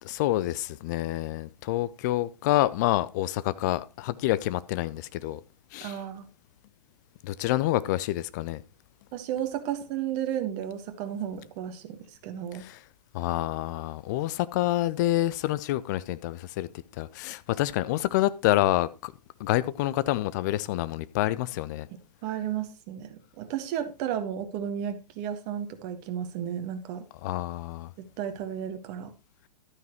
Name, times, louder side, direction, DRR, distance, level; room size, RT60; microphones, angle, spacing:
voice 1, 0.0-5.4 5.7-6.0 7.2-8.6 12.5-12.8 13.1-16.7 17.0-19.1 19.4-21.9 27.2-27.9, left 15 dB, 30° left, 0.4 m, -27 dB
voice 2, 5.8-6.3 9.1-12.6 22.2-27.0 28.0-29.1, right 9 dB, 30° right, 1.5 m, -33 dB
12.0 x 9.2 x 3.0 m
figure-of-eight pair, 115°, 21 cm